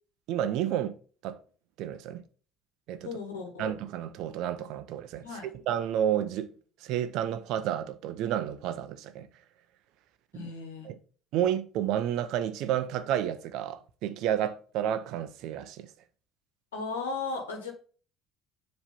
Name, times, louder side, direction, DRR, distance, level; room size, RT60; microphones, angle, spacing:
voice 1, 0.3-1.0 1.2-1.4 1.8-2.2 2.9-3.2 3.6-5.3 5.5-6.5 6.8-9.3 10.3-10.5 10.8-11.0 11.3-15.9, right 10 dB, 60° right, 0.7 m, -31 dB
voice 2, 3.0-3.8 5.2-5.5 10.3-10.9 16.7-17.7, left 4 dB, 80° left, 1.3 m, -36 dB
7.3 x 3.2 x 5.2 m
hypercardioid pair, 60°, 0 cm